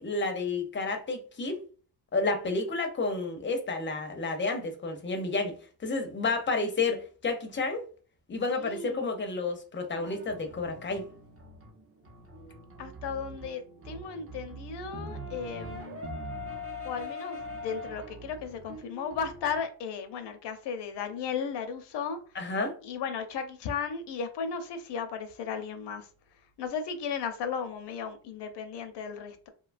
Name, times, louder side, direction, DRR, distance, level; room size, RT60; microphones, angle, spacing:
voice 1, 0.0-1.6 2.1-5.6 5.8-7.8 8.3-11.1 22.4-22.7, left 3 dB, 30° left, 0.5 m, -30 dB
voice 2, 8.5-9.0 12.8-16.0 16.8-22.2 22.8-26.1 26.6-29.5, left 6 dB, 75° left, 0.6 m, -35 dB
sound 1, 9.9-19.6, left 1 dB, 35° right, 0.6 m, -42 dB
2.7 x 2.2 x 2.4 m
cardioid pair, 115°, 42 cm